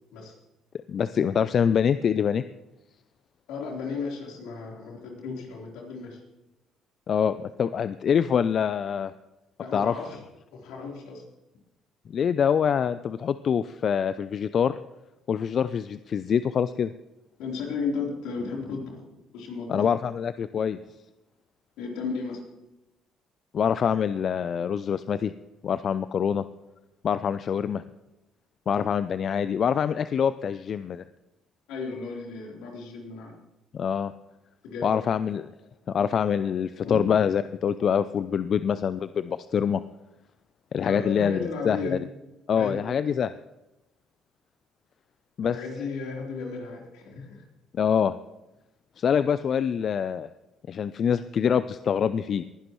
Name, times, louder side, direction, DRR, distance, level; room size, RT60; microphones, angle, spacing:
voice 1, 0.9-2.4 7.1-9.1 9.7-9.9 12.1-14.8 15.3-16.9 19.7-20.8 23.5-25.3 25.6-26.4 27.0-27.8 28.7-31.0 33.7-34.1 34.8-35.5 35.9-39.8 40.7-42.0 42.5-43.3 45.4-45.6 47.8-48.1 49.0-50.3 50.7-52.4, left 7 dB, 55° left, 13 dB, 0.4 m, -25 dB
voice 2, 3.5-6.2 9.6-10.2 10.5-11.2 17.4-19.9 21.8-22.4 31.7-33.3 34.6-34.9 36.8-37.0 40.8-42.0 42.5-42.8 45.4-47.4, left 4 dB, 80° left, -1 dB, 3.7 m, -34 dB
20.0 x 11.0 x 3.1 m, 0.96 s
supercardioid pair, 70°, 0 cm